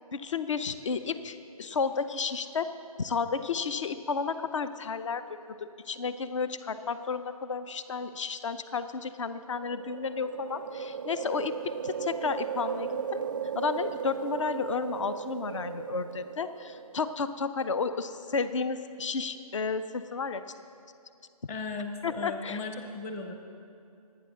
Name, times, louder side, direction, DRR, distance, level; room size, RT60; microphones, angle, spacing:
voice 1, 0.1-2.7 3.0-5.2 5.6-13.2 13.5-20.4 22.0-22.6, left 5 dB, 55° left, 12 dB, 0.7 m, -32 dB
sound 1, 9.5-17.2, right 7 dB, 35° right, 0.4 m, -36 dB
voice 2, 21.5-23.4, left 3 dB, 20° left, 5 dB, 0.9 m, -36 dB
28.0 x 9.5 x 3.7 m, 2.6 s
figure-of-eight pair, 140°, 19 cm